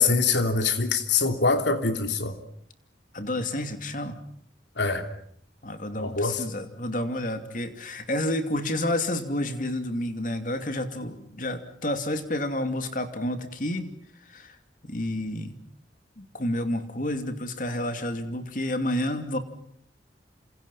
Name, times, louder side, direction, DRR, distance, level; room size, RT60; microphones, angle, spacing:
voice 1, 0.0-2.4 4.8-5.1 6.0-6.4, left 4 dB, 75° left, 7 dB, 3.1 m, -24 dB
voice 2, 3.1-4.2 5.6-13.9 14.2-14.6 14.8-15.5 16.2-19.4, left 1 dB, 45° left, 8 dB, 2.8 m, -30 dB
28.5 x 27.0 x 5.7 m, 0.65 s
head